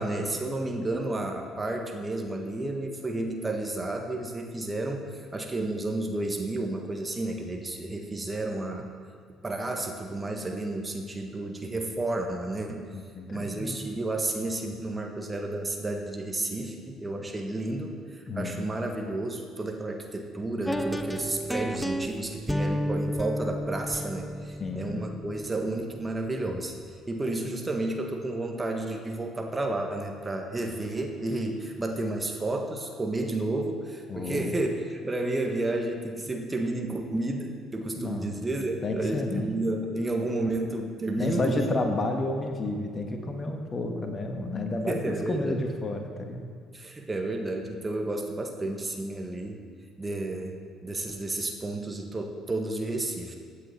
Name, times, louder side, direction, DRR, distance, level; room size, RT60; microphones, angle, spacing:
voice 1, 0.0-8.9 9.4-12.8 13.3-26.7 27.1-41.7 44.9-45.6 46.7-49.6 50.0-53.4, right 2 dB, 20° right, 3 dB, 1.5 m, -31 dB
voice 2, 12.9-13.8 18.2-18.7 24.6-25.0 34.1-34.5 38.0-38.4 38.8-39.5 41.2-46.5, left 2 dB, 30° left, 4 dB, 1.5 m, -31 dB
sound 1, 20.7-26.7, equal, 5° left, 0.7 m, -32 dB
15.5 x 8.2 x 4.4 m, 2.1 s
figure-of-eight pair, 50°, 0 cm